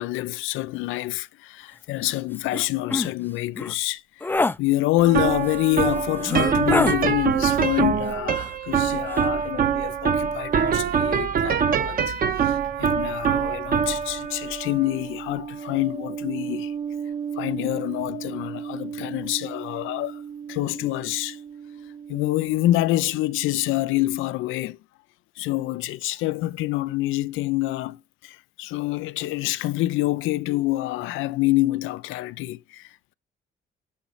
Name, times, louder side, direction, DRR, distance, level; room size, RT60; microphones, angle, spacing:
voice 1, 0.0-4.3 4.6-16.7 17.3-20.2 20.5-21.4 22.1-24.8 25.4-33.1, left 17 dB, 90° left, 0.4 m, -26 dB
sound 1, 2.0-2.2 2.5-2.6 2.9-3.1 3.5-3.7 4.2-4.6 5.5-5.6 6.2-7.0 8.3-8.8 9.1-9.3, left 3 dB, 10° left, 0.3 m, -26 dB
sound 2, 5.0-22.2, right 7 dB, 45° right, 0.7 m, -26 dB
7.1 x 3.0 x 5.3 m
cardioid pair, 90°, 20 cm